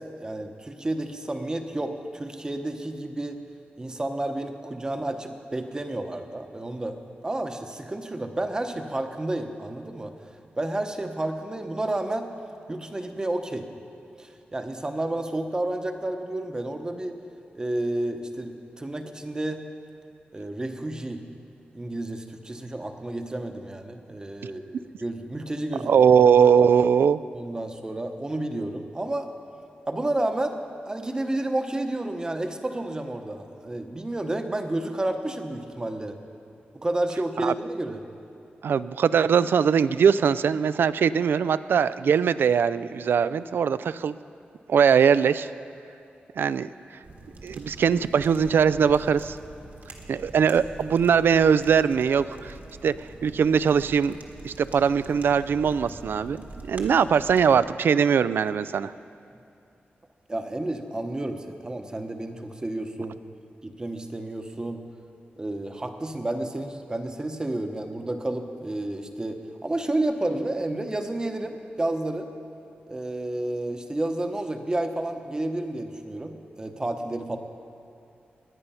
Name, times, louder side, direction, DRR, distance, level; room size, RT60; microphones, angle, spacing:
voice 1, 0.2-3.4 3.8-7.0 7.2-10.1 10.6-12.3 12.7-13.7 14.2-17.1 17.5-19.6 20.3-21.2 21.7-26.1 27.3-29.3 29.9-30.6 30.9-36.2 36.7-38.0 60.3-63.2 63.6-64.8 65.4-72.3 72.9-77.4, right 1 dB, 20° right, 6 dB, 0.9 m, -31 dB
voice 2, 25.8-27.2 37.4-37.5 38.6-44.1 44.7-45.5 46.4-46.7 47.4-49.4 50.1-52.5 52.8-52.9 53.2-54.2 54.4-58.9, right 7 dB, 80° right, 15 dB, 0.3 m, -21 dB
sound 1, 47.0-57.6, right 2 dB, 55° right, 1.6 m, -45 dB
20.5 x 9.6 x 5.6 m, 2.5 s
wide cardioid pair, 140°, 4 cm